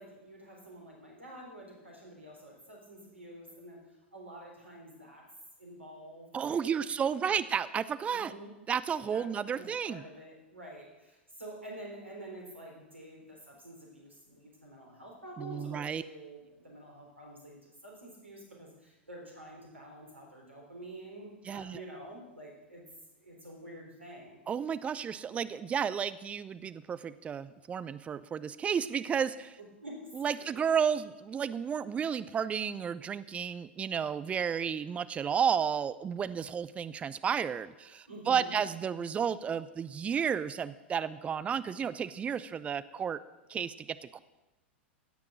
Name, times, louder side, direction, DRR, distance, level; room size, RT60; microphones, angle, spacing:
voice 1, 0.0-3.8 4.1-5.2 5.6-6.8 7.2-7.3 8.1-8.5 9.1-9.2 9.5-22.8 23.2-24.4 29.8-30.0 30.5-30.6 38.1-38.5, right 1 dB, 85° right, -1 dB, 3.8 m, -48 dB
voice 2, 6.3-8.3 8.7-10.0 15.4-16.0 21.5-21.8 24.5-29.6 30.1-43.2 43.5-44.2, right 7 dB, 20° right, 15 dB, 0.5 m, -32 dB
16.5 x 6.0 x 7.4 m, 1.0 s
figure-of-eight pair, 95°, 6 cm